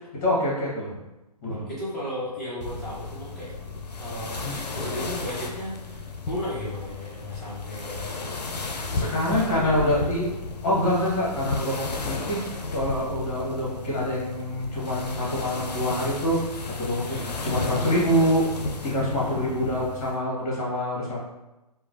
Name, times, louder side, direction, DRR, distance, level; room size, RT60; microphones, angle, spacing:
voice 1, 0.1-1.0 1.4-1.7 4.4-4.6 8.9-10.3 10.6-12.4 12.7-16.5 16.8-17.2 17.4-18.5 18.8-21.2, equal, 30° left, -6 dB, 1.3 m, -25 dB
voice 2, 1.7-3.6 4.0-8.4 8.9-10.2 17.1-17.3 19.1-19.7, left 1 dB, ahead, -11 dB, 0.7 m, -35 dB
sound 1, 2.6-20.2, left 3 dB, 85° left, 0.5 m, -34 dB
3.0 x 2.2 x 2.6 m, 1.0 s
figure-of-eight pair, 135°, 20 cm